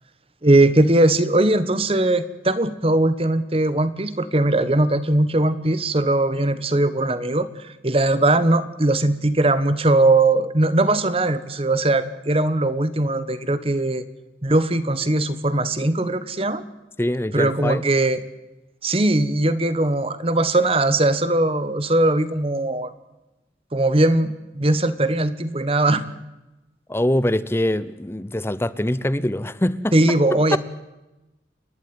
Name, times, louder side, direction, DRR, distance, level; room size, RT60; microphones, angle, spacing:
voice 1, 0.4-14.0 14.4-16.6 17.3-18.2 18.8-22.9 23.7-26.1 29.9-30.6, right 2 dB, 30° right, 14 dB, 1.2 m, -20 dB
voice 2, 17.0-17.8 26.9-30.0 30.5-30.6, left 1 dB, 15° left, 16 dB, 0.7 m, -23 dB
28.5 x 11.5 x 9.6 m, 1.0 s
head